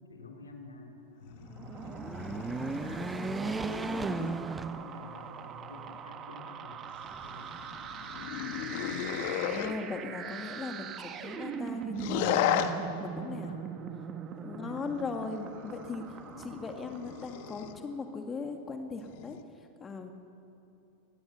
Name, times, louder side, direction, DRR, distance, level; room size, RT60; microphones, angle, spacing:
voice 1, 0.1-1.6 2.4-6.8 7.2-7.5 8.2-9.1 13.4-13.8 14.5-14.8, left 3 dB, 75° left, 2 dB, 3.4 m, -49 dB
sound 1, 1.2-4.4 6.9-9.7 11.9-12.7 14.8-17.8 19.0-19.4, left 10 dB, 50° left, 1.5 m, -35 dB
sound 2, 1.4-17.8, right 7 dB, 30° right, 1.7 m, -42 dB
sound 3, 1.8-5.4 5.9-6.0 7.0-7.8, right 4 dB, 10° right, 0.8 m, -36 dB
voice 2, 9.4-12.4 13.0-13.5 14.4-20.1, left 4 dB, 20° left, 4 dB, 2.1 m, -39 dB
25.0 x 20.0 x 7.1 m, 2.8 s
figure-of-eight pair, 90°, 0 cm